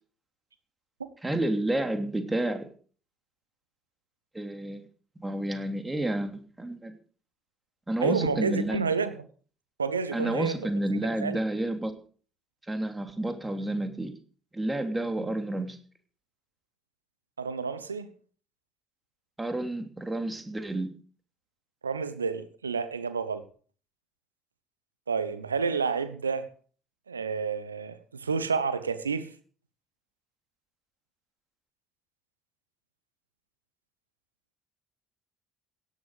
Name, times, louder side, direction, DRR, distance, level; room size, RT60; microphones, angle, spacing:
voice 1, 1.2-2.7 4.3-4.8 5.2-6.9 7.9-8.8 10.1-11.9 12.7-14.1 14.5-15.8 19.4-20.9, right 1 dB, 15° right, 3.0 m, -30 dB
voice 2, 8.0-9.3 9.8-10.7 11.0-11.4 17.4-18.1 21.8-23.4 25.1-26.5 27.1-29.3, right 5 dB, 85° right, 1.0 m, -30 dB
17.0 x 11.5 x 4.9 m
figure-of-eight pair, 50°, 0 cm